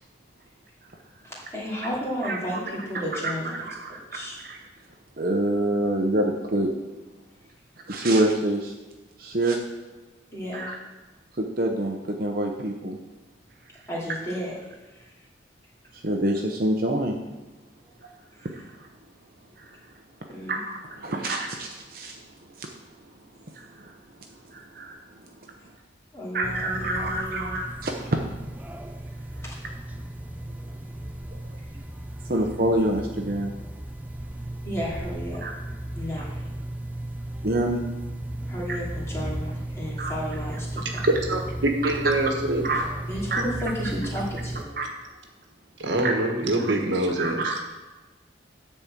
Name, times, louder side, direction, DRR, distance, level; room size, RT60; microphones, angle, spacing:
voice 1, 1.2-3.7 4.1-4.4 10.3-10.7 13.9-14.6 14.9-15.1 18.4-18.5 20.3-20.6 21.1-21.3 26.1-27.6 29.5-29.6 34.6-35.5 35.9-36.4 38.5-41.0 43.1-44.7, equal, 15° left, -6 dB, 2.6 m, -33 dB
voice 2, 3.2-4.6 5.2-6.7 7.9-8.7 9.2-9.6 10.5-10.8 11.4-13.0 15.9-17.2 18.4-18.6 19.6-19.7 20.5-22.2 22.6-22.7 23.5-23.9 24.5-25.0 26.3-28.1 32.3-33.5 35.4-35.5 37.4-37.8 38.7-38.8 40.0-40.1 42.6-42.9 43.3-43.4 44.8-44.9 46.0-46.1 46.6-46.7 47.2-47.6, right 1 dB, 50° right, 2 dB, 0.8 m, -27 dB
sound 1, 26.4-44.6, right 1 dB, 10° right, 0.5 m, -35 dB
voice 3, 41.3-42.7 45.8-47.6, right 2 dB, 75° right, 2 dB, 1.3 m, -25 dB
10.5 x 4.2 x 7.5 m, 1.2 s
head